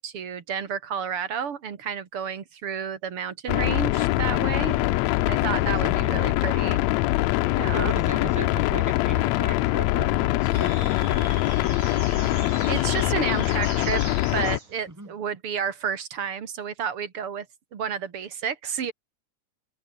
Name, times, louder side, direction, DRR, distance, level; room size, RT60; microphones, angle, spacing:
voice 1, 0.0-6.8 7.6-8.0 12.7-14.0 14.3-17.5 17.7-18.9, right 7 dB, 45° right, 2.7 m, -31 dB
sound 1, 3.5-14.6, left 19 dB, 80° left, 1.6 m, -23 dB
voice 2, 5.5-6.4 7.7-12.0 14.9-15.1, right 2 dB, 5° right, 2.2 m, -38 dB
sound 2, 10.5-14.9, right 4 dB, 70° right, 7.0 m, -40 dB
omnidirectional pair, 3.6 m